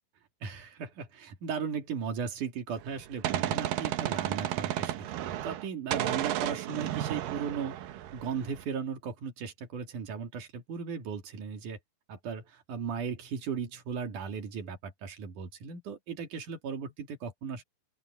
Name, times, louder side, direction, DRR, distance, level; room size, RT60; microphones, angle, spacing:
voice 1, 0.4-7.7 8.1-11.8 12.1-17.6, right 6 dB, 60° right, 4.0 m, -37 dB
Gunshot gunfire, 2.8-5.7 5.9-8.6, right 12 dB, 75° right, 2.7 m, -33 dB
open air
omnidirectional pair, 4.1 m